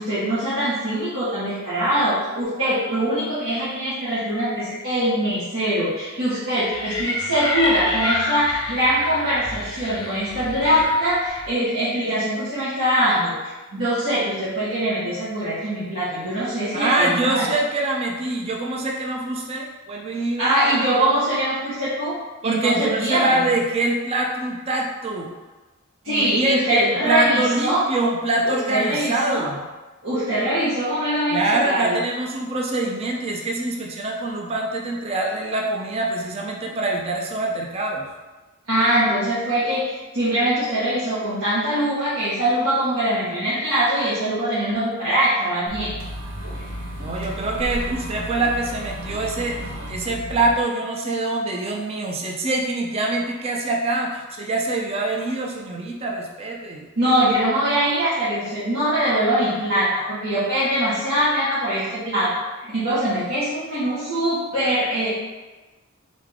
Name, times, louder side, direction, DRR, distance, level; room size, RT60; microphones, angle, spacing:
voice 1, 0.0-13.3 13.7-17.5 20.4-22.2 22.4-23.4 26.0-27.8 28.4-29.5 30.0-32.0 38.7-45.9 57.0-62.4 62.7-65.1, right 1 dB, 80° right, -13 dB, 1.4 m, -22 dB
sound 1, 6.7-11.5, left 2 dB, 20° left, 0.7 m, -28 dB
voice 2, 16.7-20.5 22.4-25.3 26.1-29.6 31.3-38.0 47.0-49.6 49.9-56.8, right 2 dB, 30° right, 0 dB, 0.4 m, -24 dB
sound 2, 45.7-50.5, equal, 60° right, 0.9 m, -33 dB
3.7 x 3.5 x 3.5 m, 1.2 s
head